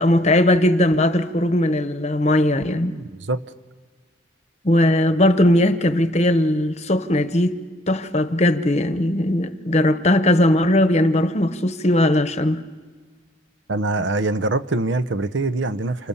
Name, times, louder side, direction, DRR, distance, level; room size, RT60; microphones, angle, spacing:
voice 1, 0.0-2.9 4.6-7.6 7.9-12.6, left 1 dB, 35° left, 1.0 m, -18 dB
voice 2, 2.9-3.5 13.7-16.1, right 2 dB, 70° right, 0.8 m, -24 dB
30.0 x 28.0 x 7.1 m
head